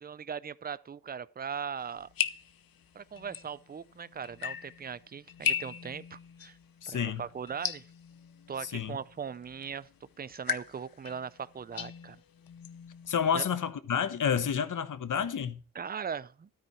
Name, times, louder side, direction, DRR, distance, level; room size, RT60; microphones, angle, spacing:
voice 1, 0.0-2.1 2.9-6.6 6.9-7.9 8.5-9.9 10.2-12.2 13.3-13.4 15.7-16.5, right 7 dB, 25° right, 0.4 m, -39 dB
sound 1, 1.8-13.4, left 9 dB, 75° left, 0.8 m, -39 dB
voice 2, 6.8-7.2 8.6-9.0 13.1-15.6, left 7 dB, 60° left, 1.1 m, -30 dB
13.0 x 8.9 x 4.4 m
wide cardioid pair, 120°, 35 cm